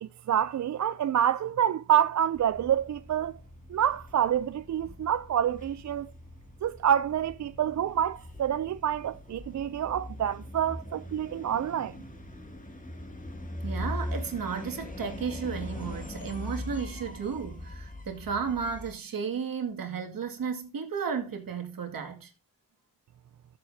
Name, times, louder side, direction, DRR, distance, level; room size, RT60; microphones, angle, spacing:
voice 1, 0.0-3.4 3.7-6.1 6.6-11.9, right 10 dB, 55° right, 0.4 m, -27 dB
sound 1, 2.3-18.9, left 1 dB, 20° left, 2.4 m, -41 dB
voice 2, 13.6-22.3, right 6 dB, 70° right, 2.3 m, -33 dB
13.5 x 7.6 x 2.7 m
wide cardioid pair, 105°, 35 cm